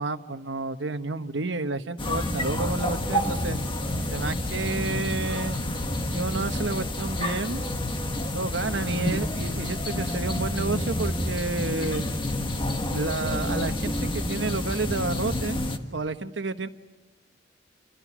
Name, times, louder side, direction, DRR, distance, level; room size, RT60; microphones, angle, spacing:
voice 1, 0.0-3.6 4.1-5.6 6.1-7.6 8.3-12.0 12.9-15.6 15.9-16.7, right 3 dB, 75° right, 9 dB, 1.2 m, -30 dB
sound 1, 2.0-15.8, left 1 dB, 25° left, 1.7 m, -29 dB
29.0 x 28.0 x 6.1 m, 1.1 s
head